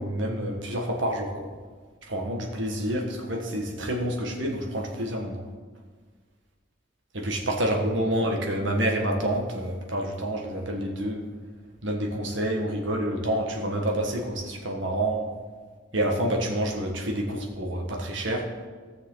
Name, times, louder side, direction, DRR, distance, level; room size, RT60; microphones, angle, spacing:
voice 1, 0.0-1.4 2.1-5.4 7.1-11.3 11.8-15.3 15.9-18.5, right 1 dB, 80° right, 1 dB, 1.8 m, -28 dB
17.5 x 6.4 x 4.0 m, 1.5 s
head